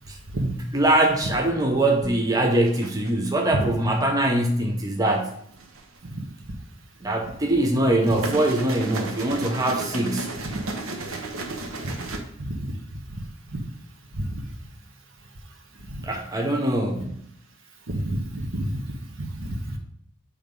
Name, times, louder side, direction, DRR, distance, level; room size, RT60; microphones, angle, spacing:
voice 1, 0.1-5.3 7.0-10.3 16.0-17.1, right 1 dB, 15° right, 2 dB, 0.6 m, -23 dB
sound 1, 2.6-3.3 5.2-6.0 7.8-12.2, right 2 dB, 90° right, 0.9 m, -33 dB
voice 2, 12.4-12.7 13.1-13.2 14.1-14.3 15.9-16.0 17.9-18.8 19.2-19.8, right 1 dB, 75° right, 2 dB, 1.2 m, -29 dB
7.3 x 3.3 x 5.1 m, 0.69 s
head